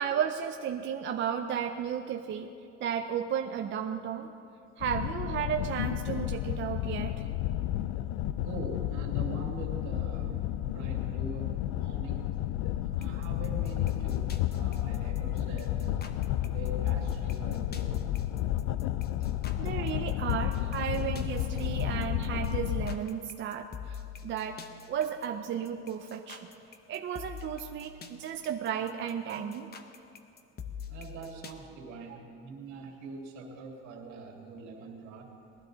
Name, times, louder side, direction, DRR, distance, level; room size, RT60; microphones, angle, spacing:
voice 1, 0.0-2.5 2.8-4.3 4.8-7.1 19.6-24.6 24.9-26.5 26.9-29.7, right 8 dB, 40° right, 5 dB, 0.6 m, -33 dB
sound 1, 4.8-22.9, left 13 dB, 85° left, 0.5 m, -32 dB
voice 2, 8.4-12.3 12.8-16.1 16.5-18.2 30.9-35.3, right 3 dB, 75° right, -1 dB, 2.6 m, -43 dB
sound 2, 13.0-31.5, left 6 dB, 35° left, 0.9 m, -45 dB
20.0 x 12.5 x 3.9 m, 2.7 s
cardioid pair, 130°, 29 cm